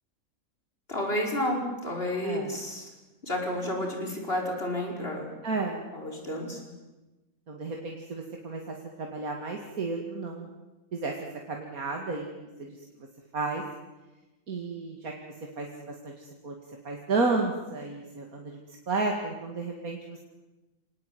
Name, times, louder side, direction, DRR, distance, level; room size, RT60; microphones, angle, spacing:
voice 1, 0.9-2.9 3.2-5.3 5.9-6.6, left 1 dB, 45° left, 0 dB, 5.6 m, -31 dB
voice 2, 5.4-5.8 7.5-10.5 10.9-11.1 11.5-12.3 12.6-12.7 13.3-13.6 14.5-16.5 16.8-18.6 18.9-20.2, right 3 dB, 85° right, 1 dB, 2.7 m, -32 dB
27.0 x 19.0 x 9.5 m, 1.1 s
omnidirectional pair, 1.5 m